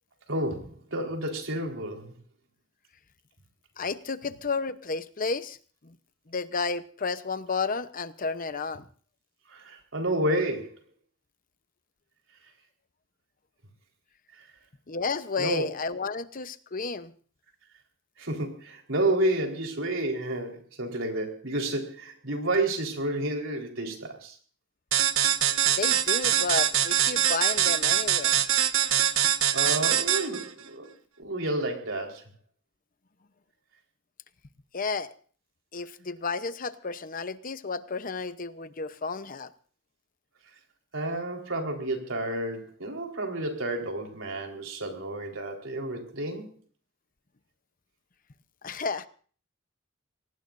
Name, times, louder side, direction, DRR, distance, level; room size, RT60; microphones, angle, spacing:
voice 1, 0.3-2.1 9.5-10.7 15.4-15.6 18.2-24.4 29.2-30.9 31.2-32.2 40.9-46.5, right 1 dB, 70° right, 2 dB, 4.3 m, -30 dB
voice 2, 3.8-5.6 5.8-6.0 6.3-8.8 14.9-17.1 25.8-28.3 34.7-35.1 35.7-39.5 48.6-49.1, left 4 dB, 45° left, 12 dB, 0.9 m, -32 dB
sound 1, 24.9-30.5, right 10 dB, 85° right, 1.2 m, -23 dB
25.0 x 18.5 x 2.6 m, 0.43 s
head